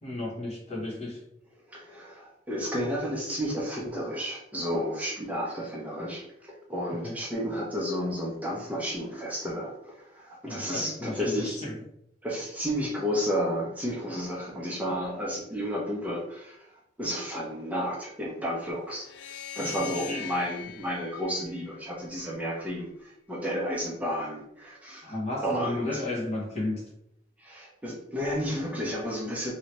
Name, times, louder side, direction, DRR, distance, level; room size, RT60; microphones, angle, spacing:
voice 1, 0.0-1.2 6.9-7.2 10.5-11.7 19.6-20.2 25.0-26.8, left 2 dB, 35° left, -2 dB, 0.9 m, -33 dB
voice 2, 1.7-11.6 12.2-16.6 17.0-19.1 19.6-25.2 25.4-26.0 27.4-29.5, equal, 10° right, -4 dB, 0.6 m, -32 dB
sound 1, 19.0-22.3, left 9 dB, 80° left, 0.3 m, -41 dB
3.1 x 2.7 x 2.9 m, 0.77 s
head